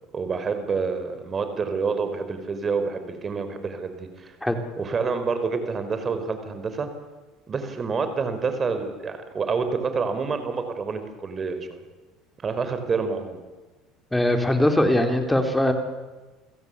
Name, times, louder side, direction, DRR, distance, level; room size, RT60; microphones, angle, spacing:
voice 1, 0.1-4.3 4.8-6.9 7.5-11.8 12.4-13.4, right 5 dB, 30° right, 9 dB, 4.8 m, -28 dB
voice 2, 14.1-15.7, left 1 dB, 5° left, 5 dB, 4.0 m, -21 dB
30.0 x 16.0 x 8.5 m, 1.2 s
supercardioid pair, 100°, 0 cm